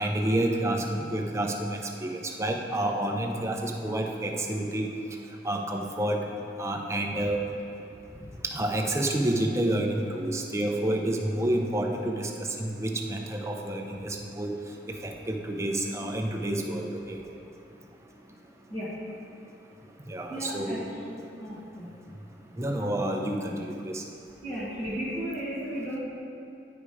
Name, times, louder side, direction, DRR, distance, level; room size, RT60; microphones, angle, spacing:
voice 1, 0.0-4.9 5.4-6.3 6.6-7.4 8.4-14.5 14.9-17.2 20.1-20.8 22.6-24.0, right 1 dB, 15° right, 2 dB, 0.6 m, -29 dB
voice 2, 20.3-20.8 21.4-21.9 24.4-26.0, equal, 20° left, -12 dB, 1.4 m, -34 dB
9.8 x 5.0 x 4.9 m, 2.6 s
head